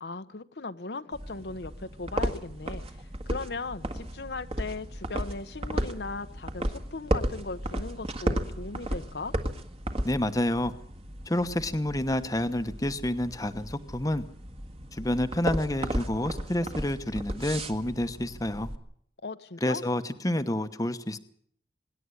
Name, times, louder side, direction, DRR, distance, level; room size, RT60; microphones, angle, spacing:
voice 1, 0.0-2.8 3.3-9.3 19.2-19.8, left 3 dB, 65° left, 10 dB, 0.9 m, -38 dB
sound 1, 1.1-18.8, right 1 dB, 30° right, 1.7 m, -34 dB
voice 2, 10.0-10.7 11.3-14.2 14.9-18.7 19.6-21.2, left 1 dB, 20° left, 9 dB, 1.0 m, -29 dB
25.0 x 11.0 x 9.8 m, 0.64 s
head